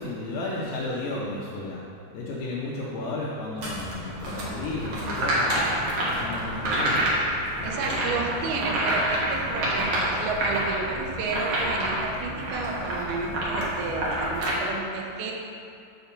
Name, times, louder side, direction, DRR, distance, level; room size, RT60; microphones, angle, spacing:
voice 1, 0.0-1.8 2.1-5.8 6.1-7.0 7.6-8.4, left 2 dB, 80° left, -5 dB, 2.0 m, -33 dB
sound 1, 3.6-14.5, right 1 dB, 60° right, 1.6 m, -28 dB
voice 2, 7.6-15.3, right 4 dB, 80° right, 0 dB, 3.1 m, -31 dB
6.9 x 5.6 x 6.8 m, 2.6 s
omnidirectional pair, 5.1 m